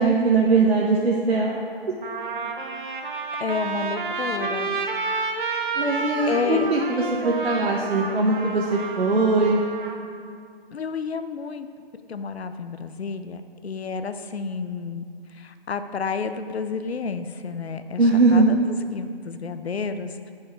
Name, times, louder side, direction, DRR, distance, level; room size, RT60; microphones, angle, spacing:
voice 1, 0.0-1.6 5.7-9.6 18.0-18.5, right 3 dB, 90° right, -2 dB, 1.1 m, -20 dB
Trumpet, 1.3-1.4 2.0-10.0, right 4 dB, 55° right, 1.0 m, -30 dB
voice 2, 3.4-4.7 6.3-6.7 10.7-11.7 12.1-15.1 15.3-18.0 18.3-18.6 18.9-20.2, left 5 dB, 90° left, 10 dB, 0.6 m, -30 dB
8.6 x 5.6 x 4.7 m, 2.2 s
hypercardioid pair, 155°, 31 cm